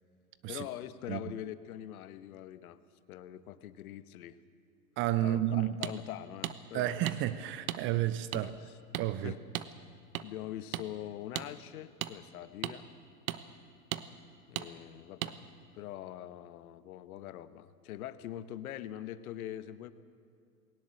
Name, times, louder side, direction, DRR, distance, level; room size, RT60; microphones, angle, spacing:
voice 1, 0.5-2.8 3.1-4.4 5.2-7.0 8.3-8.5 9.2-9.4 10.2-12.8 14.5-19.9, left 12 dB, 60° left, 1.1 m, -43 dB
voice 2, 5.0-5.7 6.7-8.5 9.0-9.3, right 13 dB, 25° right, 0.5 m, -31 dB
sound 1, 5.8-5.9 6.4-6.6 7.1-7.2 7.7-7.8 8.3-8.4 8.9-9.1 9.5-9.7 10.1-10.2 10.7-10.9 11.3-11.5 12.0-12.1 12.6-12.8 13.3-13.4 13.9-14.0 14.6-14.7 15.2-15.3, right 14 dB, 60° right, 1.1 m, -35 dB
20.5 x 18.0 x 7.7 m
hypercardioid pair, 105°, 48 cm